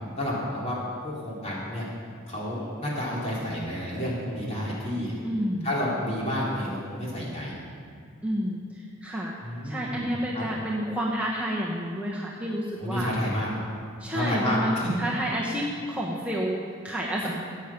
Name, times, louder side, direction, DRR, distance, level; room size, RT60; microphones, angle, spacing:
voice 1, 0.2-0.8 1.0-1.9 2.3-5.2 5.6-7.6 9.4-10.1 10.3-10.4 12.8-13.5 14.1-15.0, left 1 dB, 30° left, -6 dB, 3.5 m, -30 dB
voice 2, 5.2-5.7 8.2-9.4 9.6-13.1 14.0-17.3, equal, 5° right, -4 dB, 1.0 m, -30 dB
15.0 x 8.9 x 5.9 m, 2.2 s
head